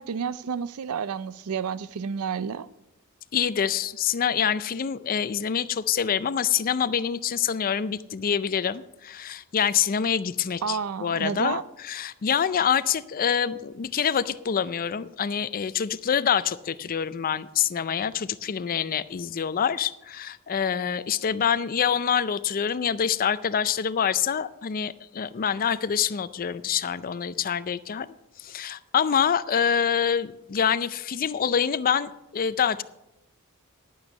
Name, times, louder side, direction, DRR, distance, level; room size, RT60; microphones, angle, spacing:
voice 1, 0.0-2.7 10.6-11.6, right 6 dB, 75° right, 0.4 m, -30 dB
voice 2, 3.3-32.8, left 8 dB, 40° left, 0.4 m, -26 dB
11.0 x 8.8 x 5.3 m
head